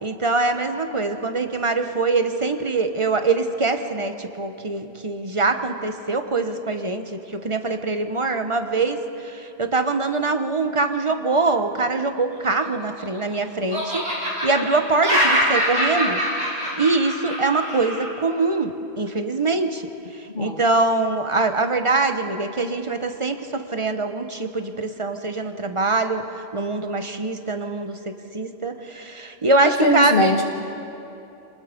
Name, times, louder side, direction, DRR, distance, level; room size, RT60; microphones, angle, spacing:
voice 1, 0.0-16.2 16.8-19.8 20.4-26.2 26.5-30.4, right 3 dB, 30° right, 7 dB, 1.0 m, -23 dB
Laughter, 12.5-13.3 13.7-18.1, equal, 70° right, 6.7 m, -24 dB
voice 2, 29.6-30.4, left 1 dB, 55° left, 1 dB, 1.5 m, -20 dB
27.0 x 20.0 x 5.2 m, 2.9 s
omnidirectional pair, 1.1 m